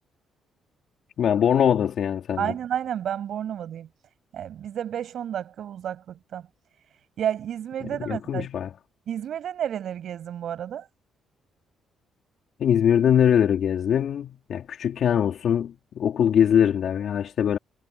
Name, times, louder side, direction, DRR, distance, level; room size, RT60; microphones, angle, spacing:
voice 1, 1.2-2.5 7.8-8.7 12.6-17.6, left 9 dB, 65° left, 3.0 m, -22 dB
voice 2, 2.4-3.9 4.3-6.4 7.2-8.5 9.1-10.9, right 9 dB, 65° right, 7.8 m, -31 dB
cardioid pair, 90°, 0 cm